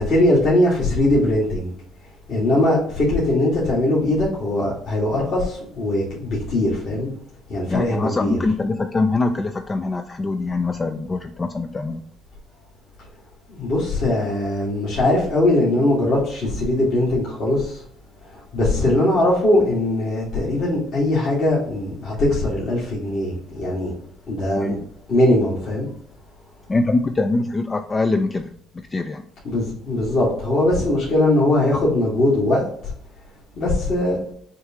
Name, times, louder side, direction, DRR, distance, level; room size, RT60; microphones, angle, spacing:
voice 1, 0.0-1.7 2.3-7.1 7.5-8.4 13.5-17.8 18.3-23.9 24.3-24.8 25.1-25.9 29.4-32.9 33.6-34.2, left 1 dB, 60° left, -6 dB, 1.9 m, -20 dB
voice 2, 7.7-12.0 24.6-24.8 26.7-28.5 28.9-29.3, left 3 dB, 25° left, 6 dB, 0.4 m, -23 dB
6.4 x 2.4 x 2.9 m, 0.64 s
supercardioid pair, 75°, 0 cm